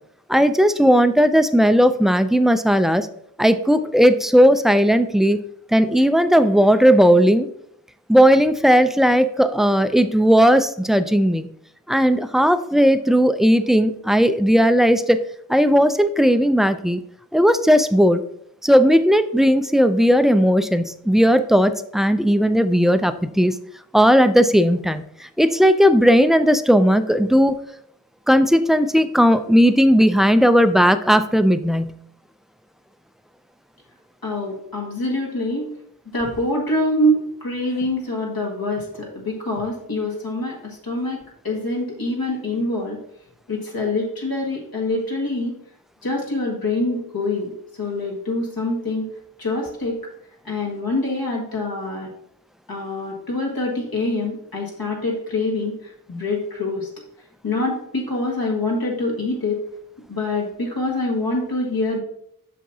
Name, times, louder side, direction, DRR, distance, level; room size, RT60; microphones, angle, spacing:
voice 1, 0.3-3.1 3.4-5.4 5.7-7.5 8.1-11.5 11.9-15.2 15.5-17.0 17.3-18.2 18.6-23.5 23.9-25.0 25.4-27.5 28.3-31.9, equal, ahead, 10 dB, 0.4 m, -16 dB
voice 2, 34.2-35.7 36.1-43.0 43.5-45.5 46.0-47.5 47.8-49.1 49.4-50.0 50.4-52.1 52.7-56.9 57.4-59.6 60.1-62.0, left 2 dB, 75° left, -2 dB, 1.7 m, -25 dB
7.5 x 5.8 x 2.7 m, 0.70 s
wide cardioid pair, 50°, 36 cm